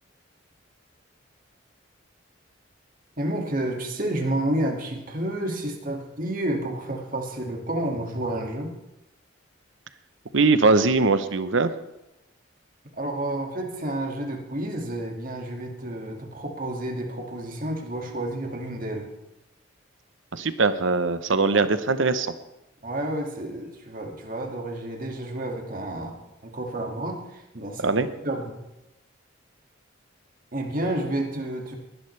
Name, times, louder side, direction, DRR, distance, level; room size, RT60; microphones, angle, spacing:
voice 1, 3.2-8.7 13.0-19.1 22.8-26.2 26.4-28.6 30.5-31.8, right 1 dB, 45° right, 1 dB, 2.2 m, -30 dB
voice 2, 10.3-11.7 20.3-22.3 27.8-28.1, right 3 dB, 80° right, 11 dB, 0.9 m, -21 dB
20.5 x 11.5 x 3.3 m, 0.92 s
head